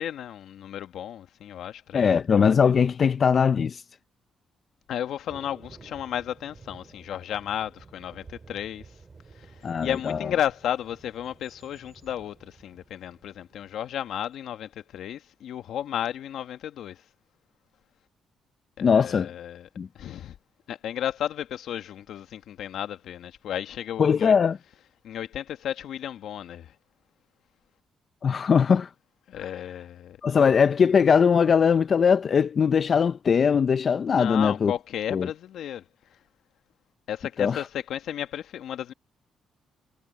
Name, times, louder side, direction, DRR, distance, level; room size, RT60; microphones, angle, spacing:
voice 1, 0.0-2.2 4.9-8.9 9.3-17.0 18.8-19.7 19.9-20.4 20.7-24.3 25.0-26.7 29.3-30.2 34.1-35.8 37.1-38.9, left 10 dB, 75° left, 1.6 m, -33 dB
voice 2, 1.9-3.8 9.6-10.3 18.8-19.3 19.8-19.9 24.0-24.6 28.2-28.9 29.4-29.5 30.2-34.7 35.1-35.3 37.4-37.7, left 6 dB, 45° left, 0.5 m, -21 dB
Thunder, 5.3-14.3, right 4 dB, 35° right, 5.4 m, -52 dB
cardioid pair, 90°, 0 cm